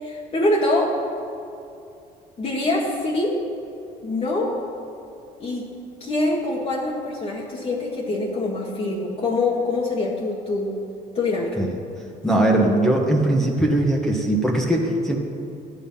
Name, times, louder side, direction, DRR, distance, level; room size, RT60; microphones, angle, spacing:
voice 1, 0.0-0.9 2.4-3.4 4.0-4.6 5.4-5.7 6.0-10.8 11.2-11.6, left 2 dB, 35° left, -4 dB, 1.8 m, -24 dB
voice 2, 12.2-15.2, right 1 dB, ahead, -1 dB, 1.6 m, -20 dB
13.0 x 8.9 x 5.7 m, 2.7 s
cardioid pair, 110°, 17 cm